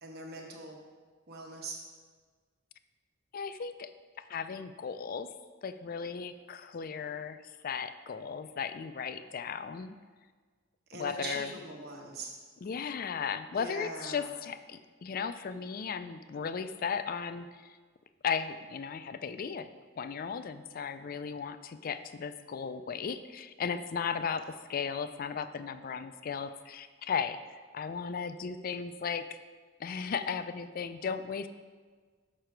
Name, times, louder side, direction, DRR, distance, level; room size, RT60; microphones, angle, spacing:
voice 1, 0.0-0.8 1.3-1.8 10.9-12.3 13.5-14.3, right 2 dB, 55° right, 0 dB, 1.2 m, -42 dB
voice 2, 3.3-3.9 4.3-5.3 5.6-7.4 7.6-10.0 10.9-11.5 12.6-17.7 18.2-19.7 20.0-24.4 24.7-29.3 29.8-31.5, left 6 dB, 45° left, 11 dB, 0.4 m, -36 dB
6.6 x 6.0 x 4.5 m, 1.5 s
head